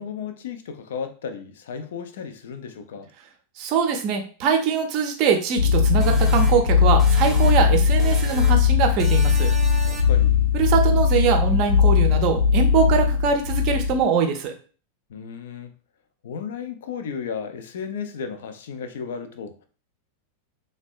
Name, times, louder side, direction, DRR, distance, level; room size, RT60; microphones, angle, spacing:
voice 1, 0.0-3.1 9.8-10.5 15.1-15.7 16.2-19.6, left 6 dB, 60° left, 0.4 m, -34 dB
voice 2, 3.6-9.5 10.5-14.5, right 6 dB, 40° right, 0.5 m, -22 dB
sound 1, 5.6-14.1, left 6 dB, 90° right, 0.3 m, -19 dB
sound 2, 6.0-7.7 8.0-8.7 9.0-10.3, left 1 dB, 5° right, 0.7 m, -35 dB
3.3 x 2.1 x 2.4 m
figure-of-eight pair, 90°, 0 cm